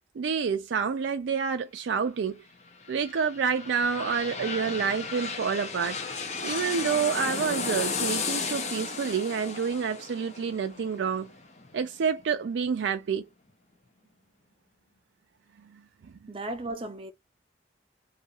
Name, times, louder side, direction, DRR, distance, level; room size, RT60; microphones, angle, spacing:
voice 1, 0.2-2.4 2.9-6.0 6.4-11.3 11.7-13.2, right 6 dB, 90° right, 0.4 m, -28 dB
sound 1, 2.6-12.2 12.7-12.8, left 4 dB, 40° left, 0.7 m, -34 dB
voice 2, 16.3-17.1, right 2 dB, 30° right, 0.6 m, -35 dB
2.7 x 2.4 x 2.8 m
head